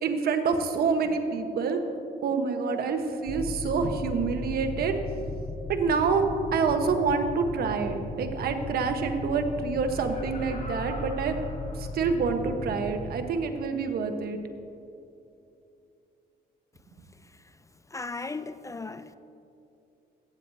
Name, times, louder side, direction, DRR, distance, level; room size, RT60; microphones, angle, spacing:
voice 1, 0.0-1.8 2.2-4.9 5.7-11.4 11.8-14.4, right 5 dB, 70° right, 1.2 m, -27 dB
sound 1, 3.3-13.1, left 2 dB, 35° left, 3.4 m, -36 dB
Laughter, 9.8-12.4 12.9-13.0, left 3 dB, 50° left, 1.9 m, -45 dB
voice 2, 17.9-19.2, left 3 dB, 20° left, 0.4 m, -36 dB
16.0 x 14.5 x 2.8 m
cardioid pair, 105°, 17 cm